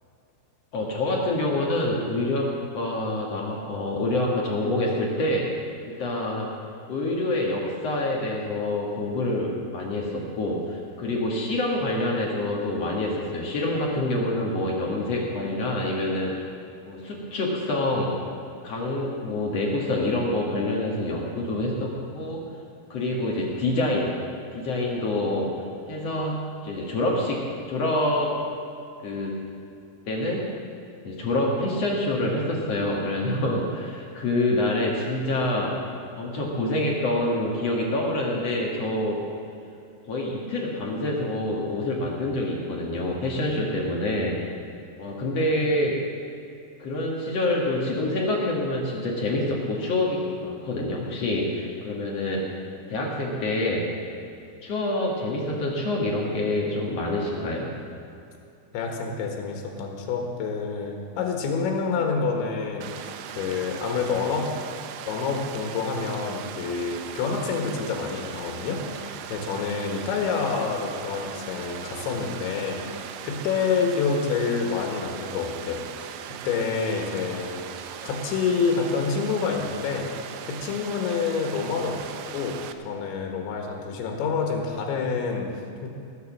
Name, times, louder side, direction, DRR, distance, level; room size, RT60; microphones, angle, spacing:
voice 1, 0.7-5.5 5.9-6.5 6.9-16.4 16.9-18.1 18.6-22.4 22.9-24.1 24.5-25.6 25.9-28.4 29.0-29.4 30.1-30.4 31.0-35.8 36.2-39.2 40.1-44.5 45.0-46.0 46.8-52.5 52.9-53.9 54.6-57.7, left 1 dB, 55° left, -2 dB, 2.0 m, -26 dB
voice 2, 58.7-64.5 65.1-80.1 80.5-82.6 82.9-85.9, left 5 dB, 85° left, 2 dB, 3.7 m, -28 dB
Water, 62.8-82.7, right 9 dB, 80° right, 2.5 m, -39 dB
19.0 x 7.0 x 7.3 m, 2.6 s
omnidirectional pair, 5.1 m